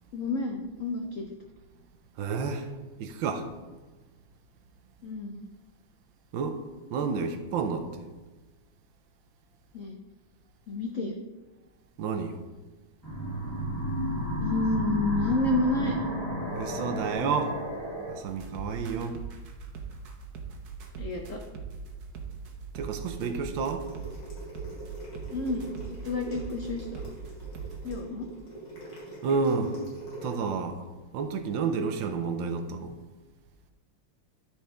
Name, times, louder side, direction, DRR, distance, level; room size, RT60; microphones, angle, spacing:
voice 1, 0.1-1.2 5.0-5.4 9.7-10.0 10.7-11.2 14.4-15.9 21.0-21.4 25.3-27.0 27.8-28.3, left 2 dB, 90° left, 2 dB, 0.7 m, -30 dB
voice 2, 2.2-2.7 3.0-3.5 6.3-6.6 6.9-8.1 12.0-12.4 16.5-17.6 18.1-19.2 22.7-23.8 29.2-29.8 30.2-30.8 31.1-33.0, right 5 dB, 75° right, 7 dB, 1.3 m, -30 dB
sound 1, 13.0-18.1, equal, 10° left, 2.4 m, -32 dB
sound 2, 18.3-27.9, right 5 dB, 55° right, 1.3 m, -41 dB
sound 3, 23.8-30.4, right 2 dB, 60° left, 3.2 m, -43 dB
13.0 x 4.6 x 3.4 m, 1.3 s
omnidirectional pair, 2.3 m